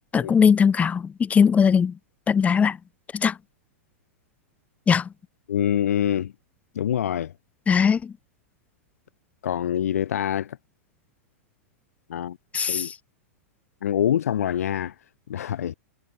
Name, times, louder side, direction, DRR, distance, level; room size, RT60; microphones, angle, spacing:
voice 1, 0.1-2.0 2.3-2.8 3.1-3.4 4.9-5.1 7.7-8.1 12.5-13.0, left 6 dB, 15° left, 1.6 m, -20 dB
voice 2, 5.5-6.3 6.7-7.3 9.4-10.6 12.1-12.4 12.7-12.9 13.8-14.9 15.3-15.7, left 10 dB, 80° left, 0.7 m, -25 dB
hypercardioid pair, 125°, 8 cm